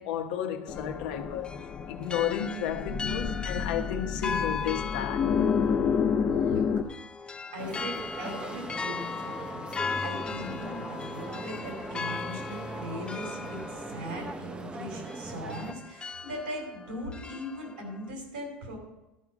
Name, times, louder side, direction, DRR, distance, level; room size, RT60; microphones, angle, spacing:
voice 1, 0.0-1.5 1.9-5.4, left 9 dB, 75° left, 1.1 m, -32 dB
sound 1, 0.7-6.8, left 6 dB, 40° left, 0.9 m, -29 dB
sound 2, 0.7-18.1, left 5 dB, 20° left, 0.5 m, -38 dB
voice 2, 6.3-6.7 7.2-18.8, equal, 90° right, 4.7 m, -40 dB
sound 3, 7.6-15.7, right 2 dB, 20° right, 0.9 m, -40 dB
12.5 x 5.9 x 6.3 m
hypercardioid pair, 90°, 5 cm